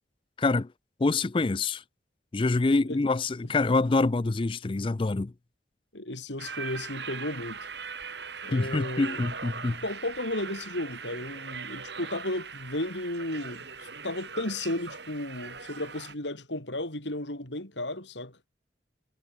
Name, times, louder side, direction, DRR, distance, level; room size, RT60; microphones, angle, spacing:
voice 1, 0.4-0.7 1.0-1.8 2.3-5.3 8.5-9.8, left 3 dB, 30° left, 0.4 m, -26 dB
voice 2, 5.9-7.6 8.4-9.3 9.8-18.4, left 1 dB, 80° left, 6.6 m, -34 dB
sound 1, 6.4-16.1, right 5 dB, 70° right, 6.9 m, -40 dB
head